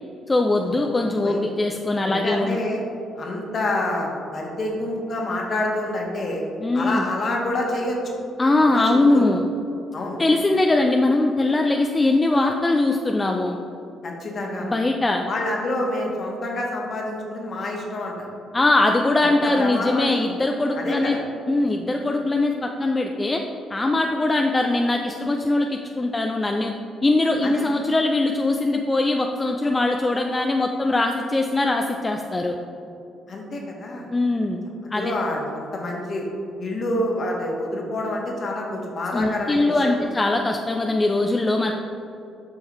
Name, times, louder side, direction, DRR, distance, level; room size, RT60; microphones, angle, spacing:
voice 1, 0.3-2.6 6.6-7.1 8.4-9.4 10.2-13.6 14.6-15.2 18.5-21.2 21.5-23.4 23.7-26.7 27.0-32.6 34.1-34.6 34.9-35.1 39.1-41.7, left 2 dB, 25° left, 3 dB, 0.5 m, -21 dB
voice 2, 2.1-2.8 3.2-6.4 6.7-8.1 8.6-9.3 9.9-10.2 14.0-14.8 15.3-18.3 19.2-20.2 20.7-21.2 27.4-27.8 33.3-34.1 34.8-36.2 36.6-40.0, left 1 dB, 50° left, -1 dB, 1.4 m, -28 dB
7.9 x 5.5 x 3.2 m, 2.7 s
hypercardioid pair, 50°, 0 cm